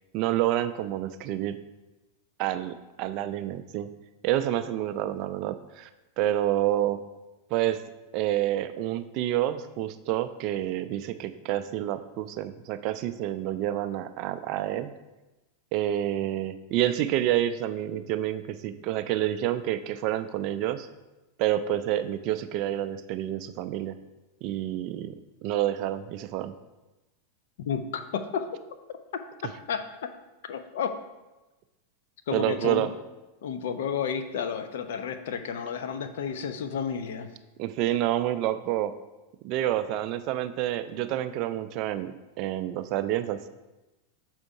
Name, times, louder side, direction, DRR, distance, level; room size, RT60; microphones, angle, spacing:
voice 1, 0.1-1.6 2.4-3.9 4.2-5.9 6.2-7.0 7.5-7.8 8.1-14.9 15.7-20.9 21.4-24.0 24.4-25.1 25.4-26.5 32.3-32.9 37.6-38.9 39.4-43.5, right 12 dB, 40° right, 11 dB, 0.4 m, -28 dB
voice 2, 27.7-28.5 29.7-29.8 30.5-31.0 32.3-32.8 33.4-37.3, left 7 dB, 55° left, 9 dB, 0.5 m, -31 dB
6.2 x 4.4 x 4.7 m, 1.1 s
figure-of-eight pair, 90°, 0 cm